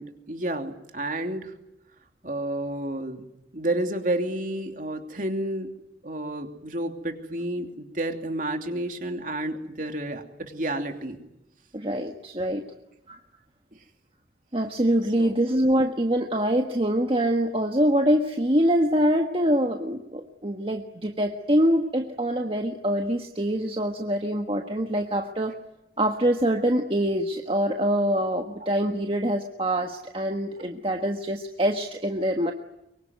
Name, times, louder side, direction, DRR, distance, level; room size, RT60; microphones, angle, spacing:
voice 1, 0.0-1.5 2.2-3.2 3.5-5.7 6.0-11.2 13.7-13.8 15.2-15.3 28.6-28.7, right 1 dB, 45° right, 5 dB, 2.9 m, -30 dB
voice 2, 11.7-12.6 13.1-13.2 14.5-25.5 26.0-32.5, equal, 30° right, 3 dB, 1.4 m, -24 dB
24.0 x 24.0 x 9.4 m, 0.88 s
head